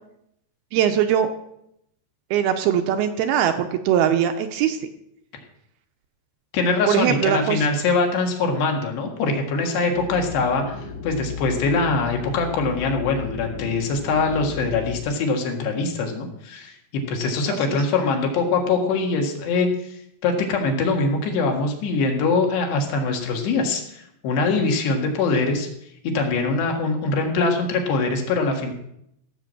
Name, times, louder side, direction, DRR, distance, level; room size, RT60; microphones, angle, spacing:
voice 1, 0.7-1.3 2.3-4.8 6.9-7.7 17.5-17.8, right 9 dB, 80° right, 7 dB, 2.5 m, -21 dB
voice 2, 6.5-10.8 11.0-25.7 26.0-28.7, left 3 dB, 80° left, 2 dB, 3.9 m, -23 dB
sound 1, 9.9-15.0, left 5 dB, 50° left, 2.1 m, -35 dB
16.0 x 6.0 x 7.6 m, 0.76 s
omnidirectional pair, 4.9 m